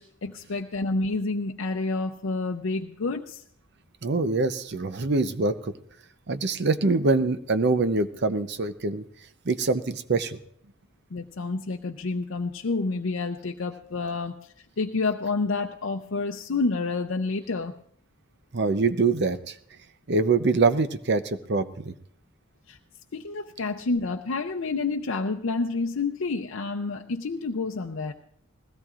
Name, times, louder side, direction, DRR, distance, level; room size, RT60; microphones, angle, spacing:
voice 1, 0.0-3.4 11.1-17.8 22.7-22.8 23.1-28.1, left 3 dB, 75° left, 2 dB, 0.6 m, -29 dB
voice 2, 4.0-5.7 6.3-9.0 9.4-10.4 18.5-19.6 20.1-21.9, right 3 dB, 60° right, 11 dB, 0.7 m, -24 dB
20.5 x 16.5 x 2.5 m, 0.68 s
head